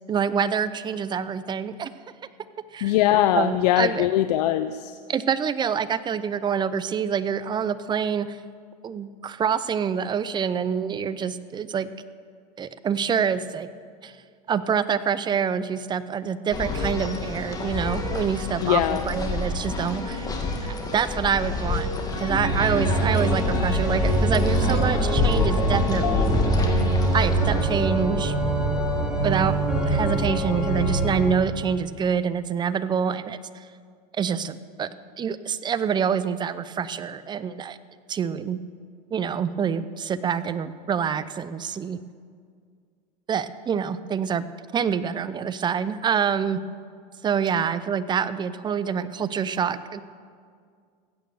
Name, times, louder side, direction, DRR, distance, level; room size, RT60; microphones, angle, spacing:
voice 1, 0.1-1.9 2.7-2.9 3.3-4.1 5.1-8.4 8.8-11.9 12.6-13.7 14.0-14.1 14.5-20.3 20.7-21.9 22.2-26.4 27.1-28.3 29.2-29.6 29.8-33.6 34.2-34.9 35.2-37.8 38.1-38.6 39.1-42.0 43.3-44.4 44.7-46.6 47.2-50.0, right 7 dB, 20° right, 15 dB, 0.5 m, -26 dB
voice 2, 2.8-5.0 18.6-19.0 23.1-23.2 23.5-23.7 24.7-26.5, left 13 dB, 75° left, 11 dB, 0.5 m, -24 dB
sound 1, 16.5-27.6, left 3 dB, 20° left, 2.0 m, -28 dB
Organ, 22.3-31.5, right 1 dB, 5° right, 3.3 m, -24 dB
15.5 x 9.1 x 7.0 m, 2.1 s
supercardioid pair, 120°, 21 cm